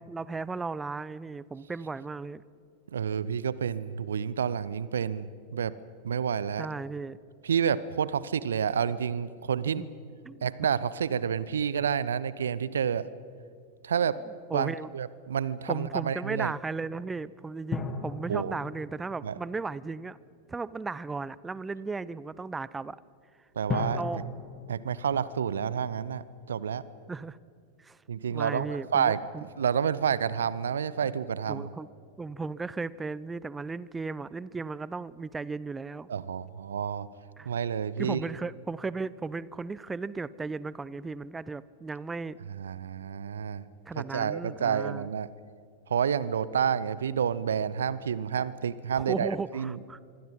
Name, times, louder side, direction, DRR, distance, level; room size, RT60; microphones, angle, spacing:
voice 1, 0.0-2.4 6.6-7.2 9.8-9.9 10.2-10.5 14.5-14.9 15.7-20.2 20.5-23.0 23.9-24.2 27.1-27.4 27.8-28.0 28.3-29.5 31.0-31.1 31.5-31.9 32.2-36.1 37.4-37.5 38.0-42.4 43.9-45.1 48.9-50.0, right 4 dB, 10° right, 20 dB, 0.6 m, -36 dB
voice 2, 2.9-5.7 6.0-6.7 7.4-9.9 10.4-13.1 13.8-14.2 14.5-16.5 18.3-18.5 19.2-19.3 23.6-24.0 24.7-26.8 28.1-29.2 29.6-31.7 36.1-37.1 37.4-38.2 42.5-43.6 44.0-45.3 45.9-49.8, right 7 dB, 65° right, 18 dB, 0.7 m, -29 dB
sound 1, 17.7-20.3 23.7-26.3 26.6-26.7, left 4 dB, 20° left, 2.2 m, -38 dB
26.0 x 24.0 x 5.5 m, 2.3 s
figure-of-eight pair, 90°, 0 cm